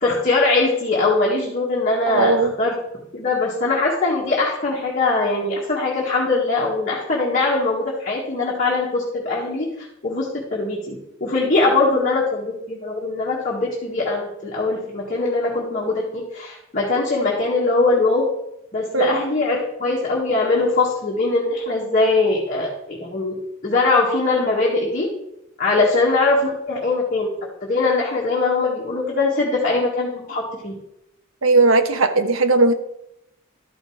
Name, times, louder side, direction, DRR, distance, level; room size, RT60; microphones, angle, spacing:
voice 1, 0.0-2.7 3.1-18.3 18.7-23.3 23.6-25.1 25.6-27.3 27.7-30.7, left 3 dB, 40° left, -4 dB, 1.9 m, -21 dB
voice 2, 2.1-2.5 18.9-19.2 25.8-25.9 31.4-32.7, right 3 dB, 80° right, 8 dB, 1.0 m, -17 dB
12.5 x 5.3 x 4.9 m, 0.82 s
head